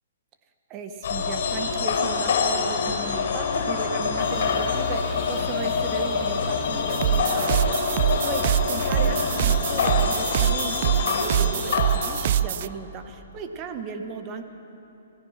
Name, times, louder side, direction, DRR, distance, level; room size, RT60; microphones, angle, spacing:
voice 1, 0.7-14.4, right 5 dB, 30° right, 6 dB, 1.5 m, -36 dB
sound 1, 1.0-12.4, left 5 dB, 60° left, 4.7 m, -26 dB
sound 2, 4.2-11.8, left 5 dB, 30° left, 3.1 m, -37 dB
sound 3, 6.9-12.7, right 11 dB, 50° right, 0.4 m, -24 dB
26.5 x 17.0 x 6.0 m, 3.0 s
hypercardioid pair, 150°, 0 cm